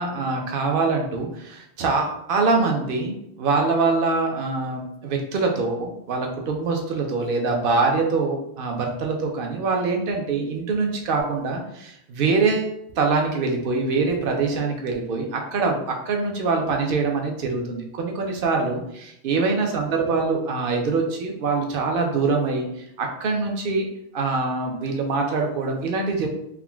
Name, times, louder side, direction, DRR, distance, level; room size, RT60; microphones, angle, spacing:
voice 1, 0.0-22.7 23.0-23.9 24.1-26.3, right 4 dB, 60° right, 2 dB, 0.7 m, -24 dB
3.6 x 2.2 x 2.2 m, 0.78 s
omnidirectional pair, 1.1 m